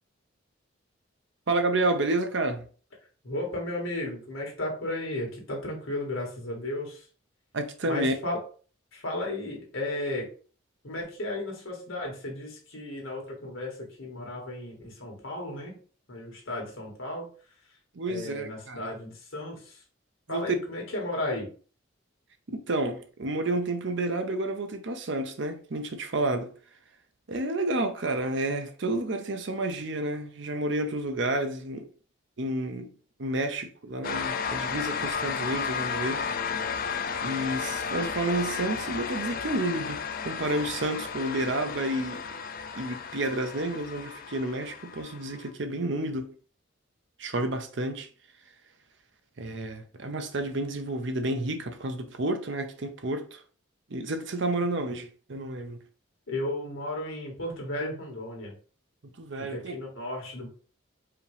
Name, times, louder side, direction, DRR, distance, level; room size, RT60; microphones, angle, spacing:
voice 1, 1.5-2.7 7.5-8.2 17.9-18.9 20.3-20.5 22.5-26.5 27.3-31.9 32.4-32.9 33.2-36.7 37.2-40.0 40.2-42.2 42.7-46.3 47.2-48.1 49.4-53.4 53.9-55.8 59.2-59.8, right 2 dB, 60° right, 0.6 m, -30 dB
voice 2, 3.2-7.0 7.9-8.4 8.9-10.3 10.8-15.8 16.1-17.3 18.1-19.8 20.3-21.5 56.3-58.5 59.5-60.5, left 1 dB, 75° left, 1.8 m, -34 dB
sound 1, 34.0-45.5, left 6 dB, 45° left, 0.3 m, -33 dB
4.8 x 2.9 x 3.4 m
head